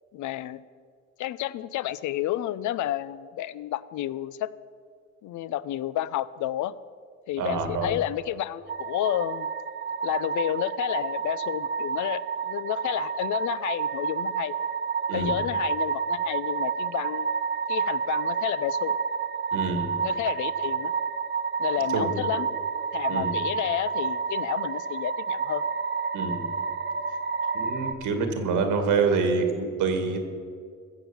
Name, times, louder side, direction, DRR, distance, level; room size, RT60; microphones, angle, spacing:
voice 1, 0.1-0.6 1.2-4.5 5.2-6.7 7.3-9.5 10.0-14.5 15.1-17.3 17.7-19.0 20.0-20.9 21.6-22.5 22.9-25.6, left 13 dB, 75° left, 17 dB, 0.5 m, -30 dB
voice 2, 7.4-7.9 15.1-15.3 19.5-19.9 21.9-22.3 23.1-23.3 26.1-26.4 27.5-30.2, right 4 dB, 85° right, 6 dB, 1.9 m, -26 dB
sound 1, 8.7-27.9, right 6 dB, 35° right, 0.9 m, -29 dB
15.5 x 7.3 x 7.1 m, 2.1 s
cardioid pair, 90°, 30 cm